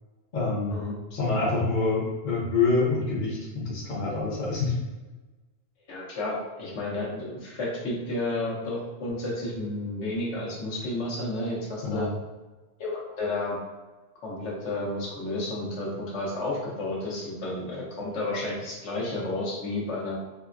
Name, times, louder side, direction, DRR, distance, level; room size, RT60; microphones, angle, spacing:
voice 1, 0.3-0.8 1.1-4.7 11.8-12.1, left 3 dB, 50° left, -5 dB, 0.9 m, -26 dB
voice 2, 5.9-12.1 12.8-13.6 14.2-20.2, left 2 dB, 85° left, -4 dB, 1.1 m, -31 dB
3.9 x 2.1 x 2.4 m, 1.2 s
omnidirectional pair, 1.2 m